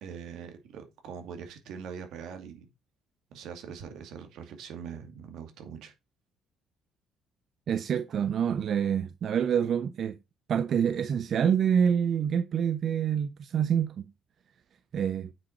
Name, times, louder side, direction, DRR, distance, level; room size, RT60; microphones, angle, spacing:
voice 1, 0.0-2.7 3.3-5.9, right 7 dB, 75° right, 2.2 m, -42 dB
voice 2, 7.7-10.2 10.5-14.0 14.9-15.3, right 8 dB, 55° right, 0.6 m, -26 dB
8.7 x 5.4 x 4.4 m
cardioid pair, 100°, 0 cm